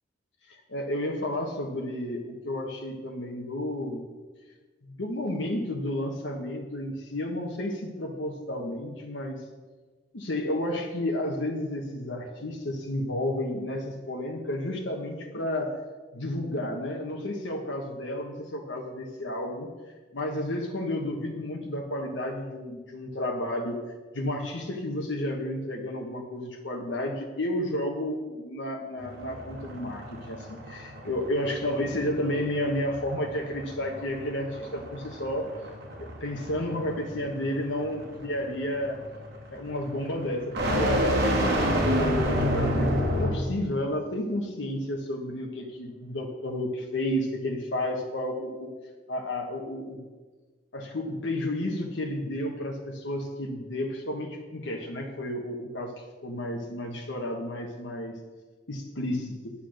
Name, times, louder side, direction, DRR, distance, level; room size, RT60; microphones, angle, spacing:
voice 1, 0.5-4.0 4.8-9.4 10.1-15.8 16.1-19.7 20.1-23.8 24.1-35.5 36.0-39.0 39.5-41.5 41.8-48.7 49.1-50.0 50.7-58.1 58.7-59.5, left 1 dB, 80° left, 1 dB, 1.3 m, -32 dB
sound 1, 29.0-43.5, equal, 60° right, 2.8 m, -29 dB
10.0 x 8.4 x 6.5 m, 1.3 s
head